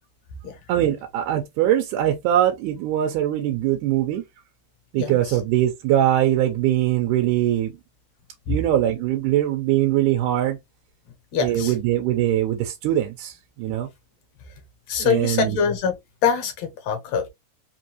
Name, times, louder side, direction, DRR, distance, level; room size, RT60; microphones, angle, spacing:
voice 1, 0.7-4.2 4.9-7.7 8.5-10.6 11.4-13.9 15.0-15.6, right 12 dB, 90° right, 2.2 m, -22 dB
voice 2, 11.3-11.7 14.9-16.0 16.2-17.3, left 7 dB, 65° left, 2.2 m, -24 dB
5.2 x 2.6 x 2.9 m
omnidirectional pair, 3.6 m